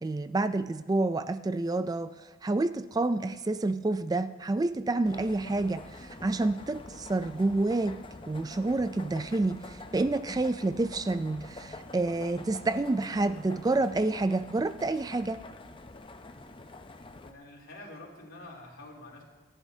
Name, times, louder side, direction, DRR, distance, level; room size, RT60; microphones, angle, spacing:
voice 1, 0.0-2.1 2.4-8.0 8.3-15.4, right 2 dB, 20° right, 12 dB, 0.3 m, -28 dB
sound 1, 5.0-17.3, left 2 dB, 25° left, 0.6 m, -46 dB
voice 2, 17.2-19.2, left 2 dB, 80° left, -3 dB, 3.3 m, -47 dB
27.5 x 11.0 x 2.8 m, 1.3 s
head